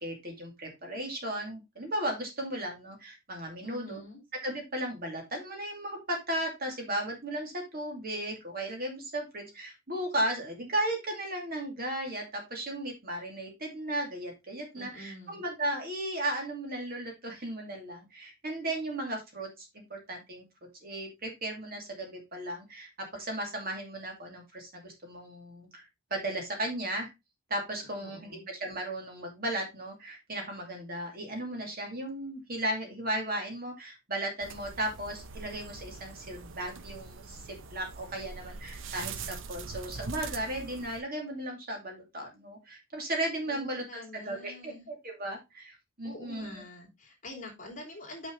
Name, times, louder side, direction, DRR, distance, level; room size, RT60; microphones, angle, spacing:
voice 1, 0.0-4.0 4.4-20.4 20.8-27.1 27.5-37.4 37.7-46.5, right 1 dB, 45° right, 2 dB, 2.4 m, -35 dB
voice 2, 3.6-4.2 14.7-15.4 27.9-28.5 43.5-44.9 46.0-48.3, left 1 dB, 35° left, -1 dB, 2.8 m, -46 dB
sound 1, 34.4-41.0, right 4 dB, 60° right, 0.7 m, -43 dB
6.2 x 6.1 x 3.8 m, 0.23 s
head